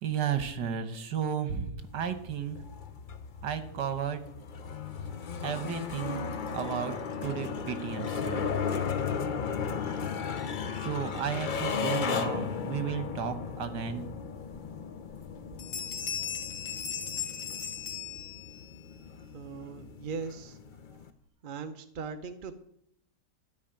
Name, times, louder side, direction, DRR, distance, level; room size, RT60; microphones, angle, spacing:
voice 1, 0.0-2.6 3.4-4.2 5.4-6.3 6.5-6.9 7.2-8.5 10.8-14.1, right 8 dB, 75° right, 10 dB, 1.8 m, -33 dB
sound 1, 1.8-21.1, left 6 dB, 60° left, 0.5 m, -36 dB
Bell, 15.1-15.3 15.6-18.7, left 8 dB, 80° left, 2.4 m, -37 dB
voice 2, 19.3-20.6 21.4-22.6, right 5 dB, 50° right, 8 dB, 0.6 m, -39 dB
13.0 x 5.3 x 9.0 m, 0.74 s
omnidirectional pair, 1.8 m